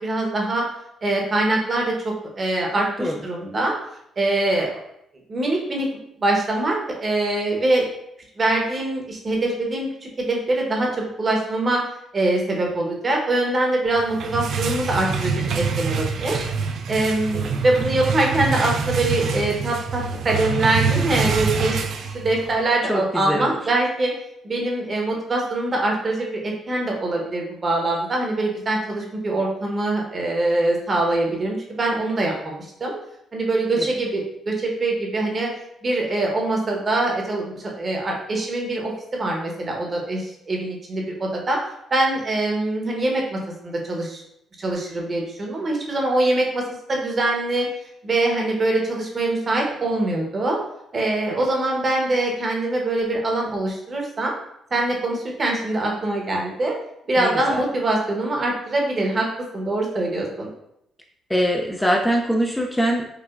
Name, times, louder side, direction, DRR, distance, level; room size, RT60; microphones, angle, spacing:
voice 1, 0.0-0.6 1.0-3.7 4.2-4.8 5.3-5.9 6.2-7.9 8.4-11.8 12.1-16.4 16.9-21.9 22.1-24.1 24.4-32.9 33.3-35.5 35.8-41.6 41.9-44.2 44.6-47.7 48.0-50.6 50.9-54.3 54.7-56.8 57.1-59.3 59.5-60.5, right 2 dB, 35° right, 0 dB, 0.9 m, -23 dB
sound 1, 14.0-22.6, right 5 dB, 65° right, 0.3 m, -25 dB
voice 2, 22.9-23.5 57.2-57.6 61.3-63.1, equal, 10° left, 1 dB, 0.4 m, -22 dB
4.7 x 2.1 x 2.4 m, 0.78 s
cardioid pair, 90°, 0 cm